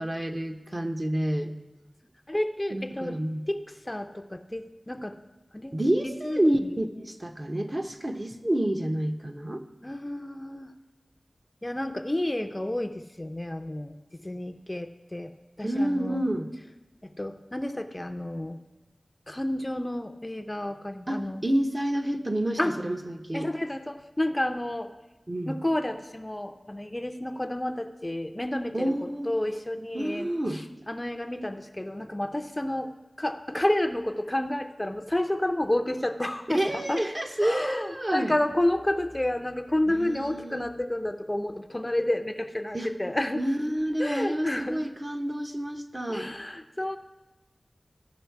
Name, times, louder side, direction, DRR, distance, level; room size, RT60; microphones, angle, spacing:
voice 1, 0.0-1.5 2.7-3.4 5.7-9.6 15.6-16.5 21.1-23.5 25.3-25.6 28.7-29.3 29.9-30.6 36.5-38.3 39.9-40.7 42.7-42.9 43.4-46.3, right 1 dB, 35° right, 5 dB, 0.8 m, -29 dB
voice 2, 2.3-3.2 3.5-5.2 5.5-5.8 6.0-6.4 9.8-10.7 11.6-15.3 15.6-16.2 17.0-18.6 19.3-21.5 22.6-22.8 23.3-24.9 25.5-37.0 37.4-43.4 44.0-44.8 46.1-47.0, left 1 dB, 20° left, 7 dB, 0.5 m, -30 dB
15.0 x 5.5 x 4.6 m, 1.1 s
wide cardioid pair, 50°, 0 cm